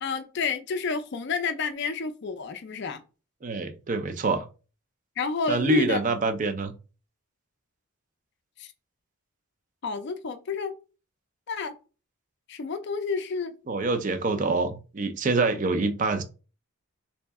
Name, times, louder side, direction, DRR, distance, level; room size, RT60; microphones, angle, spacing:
voice 1, 0.0-3.0 5.2-6.0 8.6-8.7 9.8-10.7 11.5-11.7 12.5-13.5, left 4 dB, 50° left, 0.4 m, -30 dB
voice 2, 3.4-4.5 5.5-6.7 13.7-16.2, right 3 dB, 35° right, 0.4 m, -25 dB
3.1 x 2.7 x 3.5 m
head